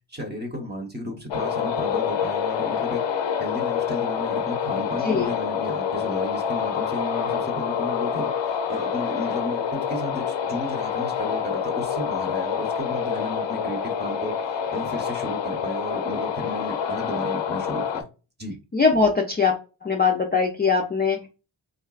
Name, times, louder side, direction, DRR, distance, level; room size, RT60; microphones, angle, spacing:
voice 1, 0.1-3.0 3.4-8.3 8.7-14.4 14.7-18.1 18.4-18.6, left 1 dB, 20° right, 0.9 m, -33 dB
sound 1, 1.3-18.0, left 7 dB, 70° left, 0.5 m, -27 dB
voice 2, 18.7-19.5 19.8-21.3, left 5 dB, 20° left, 0.4 m, -21 dB
3.7 x 2.2 x 2.3 m
wide cardioid pair, 80°, 45 cm